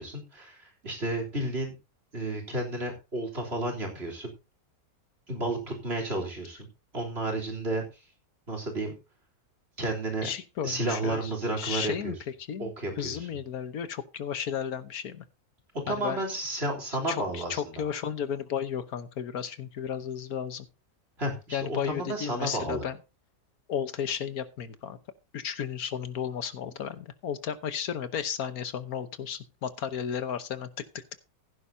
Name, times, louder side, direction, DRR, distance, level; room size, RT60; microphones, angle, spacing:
voice 1, 0.0-1.7 2.1-4.3 5.3-6.7 6.9-7.8 8.5-8.9 9.8-10.3 10.6-12.1 12.6-13.3 15.9-17.7 21.2-22.8, right 1 dB, 40° right, 3 dB, 3.7 m, -32 dB
voice 2, 10.2-11.3 11.6-12.2 12.5-12.7 13.0-15.2 15.9-16.2 17.1-20.7 21.5-23.0 23.7-25.0 25.3-31.2, left 8 dB, 75° left, 12 dB, 1.5 m, -33 dB
16.0 x 10.0 x 2.7 m, 0.29 s
omnidirectional pair, 1.6 m